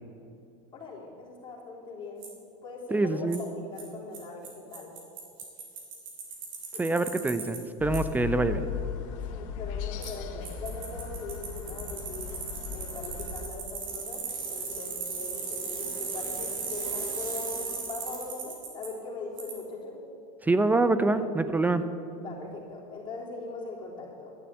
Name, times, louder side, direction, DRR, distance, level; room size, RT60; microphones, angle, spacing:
voice 1, 0.7-2.3 2.6-4.9 6.7-6.9 9.3-12.4 12.7-20.0 22.2-24.3, left 3 dB, 30° left, -4 dB, 3.5 m, -41 dB
Bicycle, 2.2-2.3 3.3-3.4 3.8-3.9 4.1-4.2 4.4-4.5 4.7-7.6 7.9-8.0 10.0-10.1 10.4-18.9 19.4-19.5, right 5 dB, 55° right, 3.2 m, -36 dB
voice 2, 2.9-3.4 6.8-8.7 20.4-21.8, right 2 dB, 10° right, 12 dB, 0.5 m, -25 dB
sound 1, 7.8-13.5, left 7 dB, 70° left, 1.2 m, -37 dB
11.5 x 7.6 x 8.2 m, 2.6 s
supercardioid pair, 125°, 17 cm